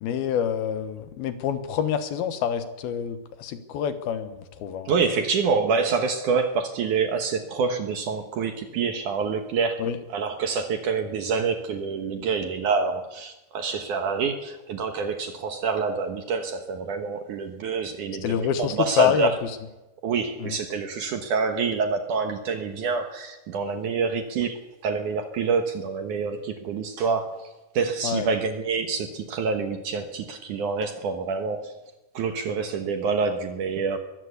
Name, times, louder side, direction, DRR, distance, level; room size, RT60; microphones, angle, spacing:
voice 1, 0.0-4.9 9.8-10.0 18.2-19.3 20.4-20.6 28.0-28.3, left 9 dB, 70° left, 10 dB, 2.9 m, -27 dB
voice 2, 4.9-9.8 10.1-19.4 20.0-24.6 24.8-27.5 27.7-31.7 32.1-34.0, right 5 dB, 65° right, 6 dB, 2.3 m, -27 dB
22.0 x 14.5 x 8.4 m, 1.0 s
omnidirectional pair, 4.8 m